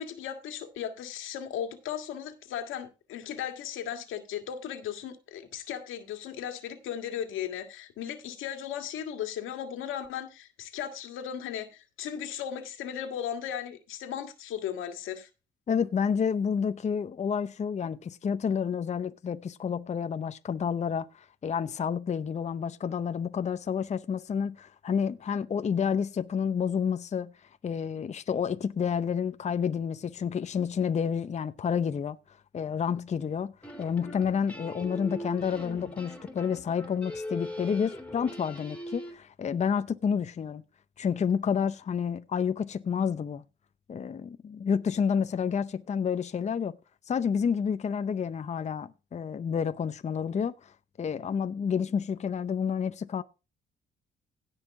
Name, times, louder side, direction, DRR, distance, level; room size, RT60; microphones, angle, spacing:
voice 1, 0.0-15.3, left 9 dB, 90° left, 1.8 m, -36 dB
voice 2, 15.7-27.3 27.6-32.2 32.5-33.5 33.8-40.6 41.0-43.4 43.9-46.8 47.1-50.7 51.0-53.2, left 7 dB, 35° left, 0.6 m, -29 dB
sound 1, 33.6-39.1, equal, 5° left, 2.8 m, -40 dB
17.0 x 5.6 x 3.6 m
cardioid pair, 90°, 20 cm